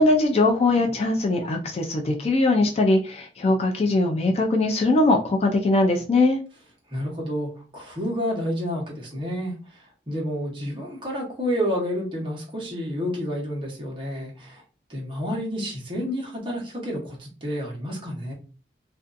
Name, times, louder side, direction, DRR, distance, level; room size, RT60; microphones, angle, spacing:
voice 1, 0.0-6.4, left 2 dB, 35° left, 2 dB, 0.3 m, -21 dB
voice 2, 6.9-9.5 10.1-14.6 14.9-18.3, equal, 30° right, -3 dB, 0.9 m, -29 dB
2.5 x 2.3 x 2.4 m, 0.37 s
head